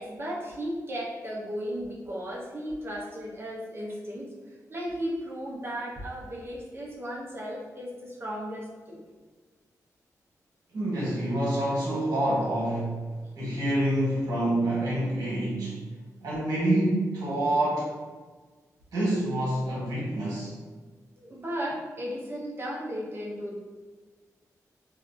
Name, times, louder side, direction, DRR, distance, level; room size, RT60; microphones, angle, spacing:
voice 1, 0.0-9.0 21.2-23.6, equal, 40° right, -3 dB, 0.7 m, -35 dB
voice 2, 10.7-13.0 13.3-15.8 16.2-17.9 18.9-20.5, right 1 dB, 80° right, -7 dB, 1.1 m, -27 dB
2.6 x 2.4 x 2.4 m, 1.4 s
cardioid pair, 65°, 6 cm